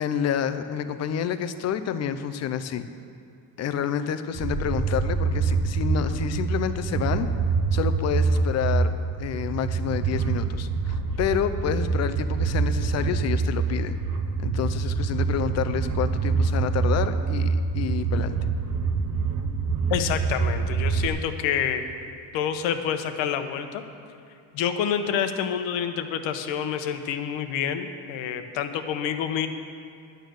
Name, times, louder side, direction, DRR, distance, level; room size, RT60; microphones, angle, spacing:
voice 1, 0.0-2.9 3.6-7.3 7.7-8.9 9.2-14.0 14.4-18.4, left 8 dB, 35° left, 10 dB, 0.5 m, -29 dB
sound 1, 4.3-21.1, right 4 dB, 35° right, 0.7 m, -25 dB
voice 2, 19.9-21.8 22.3-23.8 24.5-29.5, left 8 dB, 70° left, 8 dB, 1.0 m, -27 dB
11.0 x 9.2 x 6.4 m, 2.4 s
cardioid pair, 165°, 48 cm